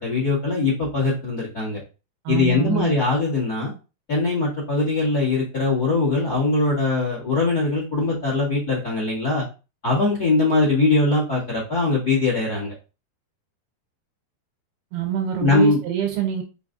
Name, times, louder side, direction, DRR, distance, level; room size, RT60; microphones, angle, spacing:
voice 1, 0.0-1.8 2.3-3.7 4.1-9.4 9.8-12.7 15.4-15.8, left 3 dB, 45° left, -4 dB, 1.2 m, -21 dB
voice 2, 2.3-2.9 14.9-16.4, right 11 dB, 75° right, 3 dB, 2.7 m, -25 dB
6.0 x 3.4 x 2.6 m, 0.31 s
omnidirectional pair, 4.8 m